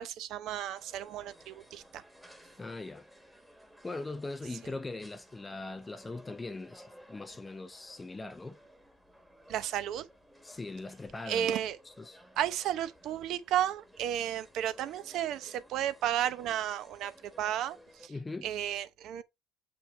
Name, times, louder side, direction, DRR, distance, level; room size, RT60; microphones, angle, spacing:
voice 1, 0.0-2.0 9.5-10.1 11.3-11.8 12.4-18.1 18.4-19.2, right 11 dB, 55° right, 0.8 m, -33 dB
sound 1, 0.7-18.1, equal, 5° right, 1.5 m, -57 dB
voice 2, 2.6-3.1 3.8-8.6 10.4-11.5 12.0-12.2 18.1-18.5, left 3 dB, 15° left, 0.6 m, -40 dB
7.1 x 5.6 x 3.4 m
cardioid pair, 135°, 0 cm